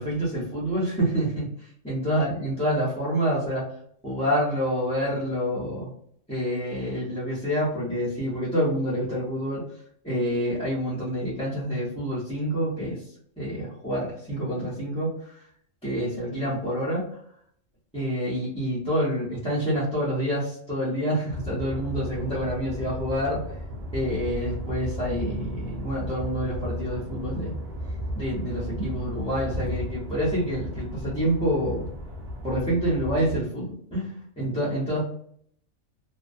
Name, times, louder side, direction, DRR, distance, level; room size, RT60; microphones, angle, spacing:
voice 1, 0.0-3.7 4.0-5.9 6.3-9.6 10.0-13.0 13.4-15.3 15.8-17.1 17.9-23.4 23.9-27.5 28.1-31.9 32.4-35.0, equal, 5° left, -7 dB, 0.7 m, -27 dB
sound 1, 21.3-33.4, equal, 60° right, 0.4 m, -34 dB
2.3 x 2.2 x 2.5 m, 0.65 s
omnidirectional pair, 1.4 m